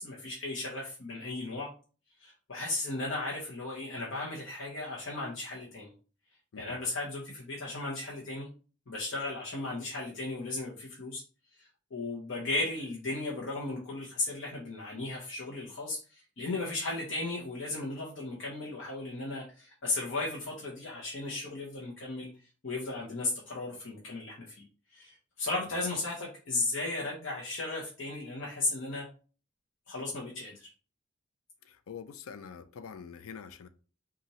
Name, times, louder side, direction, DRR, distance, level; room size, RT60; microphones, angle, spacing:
voice 1, 0.0-1.7 2.2-5.9 6.6-8.5 8.9-11.2 11.5-29.1 29.9-30.7, left 2 dB, 60° left, 1.0 m, -36 dB
voice 2, 31.6-33.7, left 6 dB, 85° left, 0.4 m, -45 dB
5.4 x 2.6 x 3.0 m
head